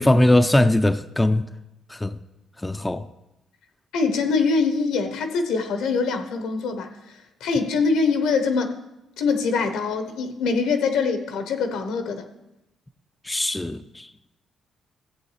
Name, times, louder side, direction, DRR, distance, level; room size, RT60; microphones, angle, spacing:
voice 1, 0.0-1.5 1.9-2.2 2.6-3.1 13.2-14.1, left 1 dB, 10° left, 0.4 m, -20 dB
voice 2, 3.9-8.7 9.2-12.3, left 4 dB, 85° left, 1.0 m, -24 dB
15.0 x 7.9 x 3.2 m
cardioid pair, 90°, 0 cm